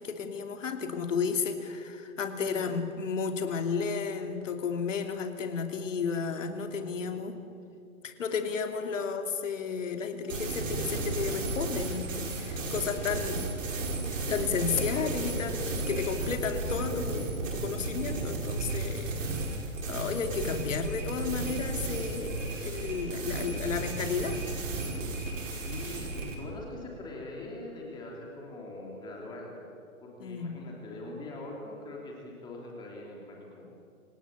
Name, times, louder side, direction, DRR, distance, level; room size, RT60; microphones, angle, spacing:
voice 1, 0.0-7.3 8.0-12.1 12.4-13.4 14.3-19.2 19.9-22.3 22.6-24.4 30.2-30.6, left 5 dB, 60° left, 6 dB, 3.1 m, -32 dB
voice 2, 6.8-7.4 12.9-13.1 25.6-26.1 26.4-29.5 30.0-33.7, left 2 dB, 10° left, -1 dB, 3.1 m, -43 dB
sound 1, 10.3-26.4, right 2 dB, 60° right, 5.3 m, -34 dB
27.0 x 17.0 x 9.0 m, 2.6 s
hypercardioid pair, 165°, 43 cm